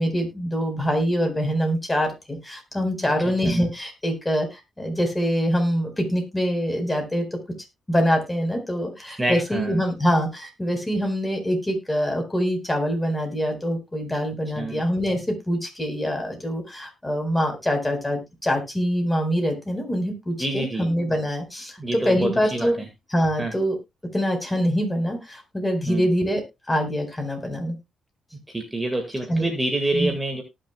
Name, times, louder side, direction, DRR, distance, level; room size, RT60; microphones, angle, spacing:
voice 1, 0.0-7.2 7.9-22.7 23.1-23.7 24.1-26.4 26.7-27.8 29.3-29.5 29.9-30.1, equal, 15° left, 3 dB, 4.5 m, -24 dB
voice 2, 9.2-9.8 14.6-14.8 20.4-20.9 21.8-22.9 23.4-23.6 25.9-26.1 28.5-30.4, right 2 dB, 15° right, 4 dB, 1.9 m, -27 dB
18.5 x 6.5 x 2.3 m, 0.22 s
cardioid pair, 90°, 0 cm